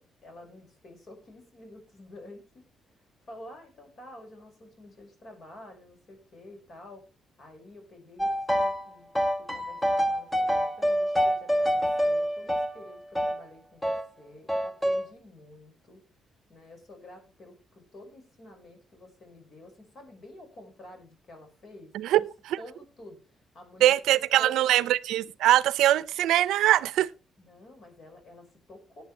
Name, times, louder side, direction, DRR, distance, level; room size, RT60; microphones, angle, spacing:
voice 1, 0.0-2.6 3.3-7.0 7.4-16.0 16.5-22.3 22.6-23.2 23.5-24.9 27.4-29.0, left 1 dB, 50° left, 5.6 m, -49 dB
sound 1, 8.2-8.8 9.1-13.4 13.8-14.1 14.5-15.1, equal, 10° left, 1.3 m, -26 dB
voice 2, 23.8-27.1, right 13 dB, 85° right, 0.5 m, -22 dB
17.5 x 9.2 x 3.2 m
cardioid pair, 90°, 0 cm